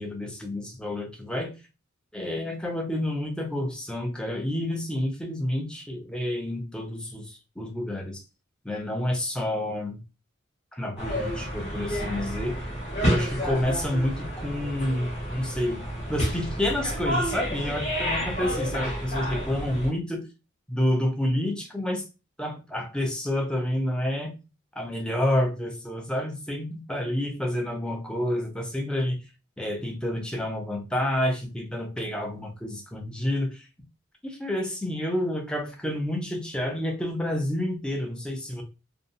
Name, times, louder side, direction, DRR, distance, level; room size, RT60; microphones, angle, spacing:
voice 1, 0.0-1.5 2.1-8.2 8.6-10.0 10.7-12.6 13.0-15.8 16.1-20.3 20.7-22.0 22.4-24.4 24.8-29.2 29.6-33.7 34.2-38.6, left 1 dB, 5° left, 2 dB, 0.4 m, -29 dB
sound 1, 11.0-19.9, equal, 30° left, 0.9 m, -30 dB
2.5 x 2.0 x 2.5 m, 0.30 s
head